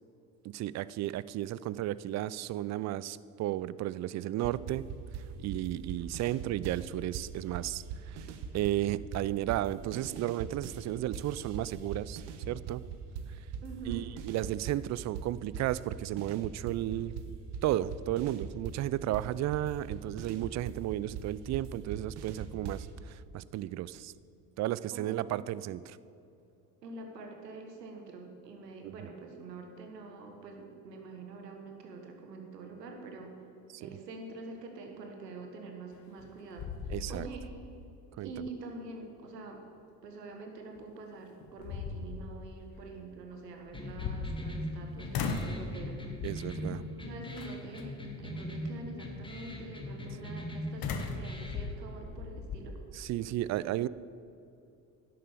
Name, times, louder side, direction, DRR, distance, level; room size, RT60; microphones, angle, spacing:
voice 1, 0.4-4.9 5.1-8.3 8.5-12.8 13.9-17.2 17.6-24.1 24.6-26.0 28.8-28.9 36.9-37.3 38.2-38.3 46.2-46.8 52.9-53.9, right 14 dB, 40° right, 19 dB, 0.4 m, -33 dB
sound 1, 4.4-6.9 7.1-10.8 11.1-14.9 15.1-22.9, right 7 dB, 60° right, 1.2 m, -41 dB
voice 2, 13.6-14.0 24.9-25.2 25.5-25.6 26.8-33.3 33.8-37.5 38.2-39.6 40.0-46.0 46.6-52.8, right 3 dB, 85° right, 3 dB, 1.6 m, -45 dB
sound 2, 35.9-36.3 36.6-37.6 38.0-38.1 40.8-40.9 41.4-42.3 43.7-44.8 45.1-45.6 46.2-46.6 47.4-47.8 50.8-52.6, left 5 dB, 45° left, 1.4 m, -37 dB
sound 3, 43.7-51.7, left 1 dB, 10° left, 2.0 m, -41 dB
11.0 x 7.7 x 6.9 m, 2.6 s
hypercardioid pair, 60°, 48 cm